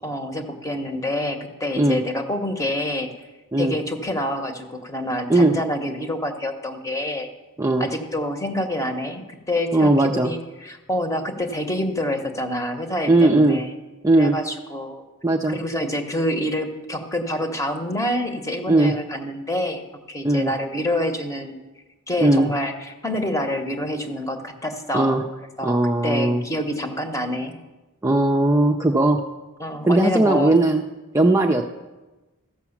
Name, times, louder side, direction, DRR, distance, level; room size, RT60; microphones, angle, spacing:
voice 1, 0.0-3.3 3.6-7.3 7.8-13.7 14.2-15.0 15.5-19.8 20.1-21.6 22.1-25.2 25.6-27.6 29.6-30.6, left 1 dB, 15° left, 6 dB, 1.0 m, -27 dB
voice 2, 9.7-10.3 13.1-13.6 14.0-14.3 15.2-15.6 18.7-18.9 20.2-20.5 22.2-22.5 24.9-25.2 25.6-26.4 28.0-29.2 29.9-30.8 31.1-31.6, right 2 dB, 15° right, 2 dB, 0.5 m, -18 dB
14.0 x 5.9 x 7.2 m, 1.1 s
head